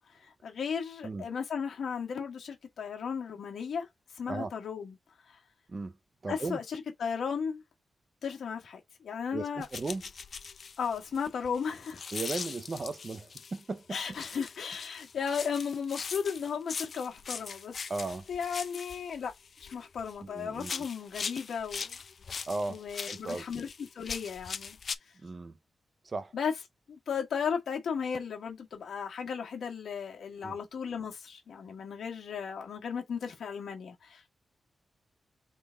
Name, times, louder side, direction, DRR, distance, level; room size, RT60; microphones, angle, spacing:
voice 1, 0.2-3.9 4.1-4.9 5.3-5.4 6.3-7.6 8.2-9.7 10.8-12.0 13.9-17.8 18.3-19.3 19.6-22.0 22.4-22.5 22.7-24.8 26.3-26.5 26.9-34.3, left 6 dB, 70° left, 1.4 m, -35 dB
voice 2, 6.2-6.6 9.3-10.0 12.1-14.2 17.9-18.3 20.2-20.9 22.5-23.5 25.1-25.6 26.0-26.3 30.4-30.6, right 3 dB, 30° right, 0.6 m, -36 dB
sound 1, 9.6-13.6 14.1-20.2 20.5-25.0, left 5 dB, 50° left, 0.4 m, -41 dB
3.7 x 3.3 x 3.9 m
wide cardioid pair, 150°, 0 cm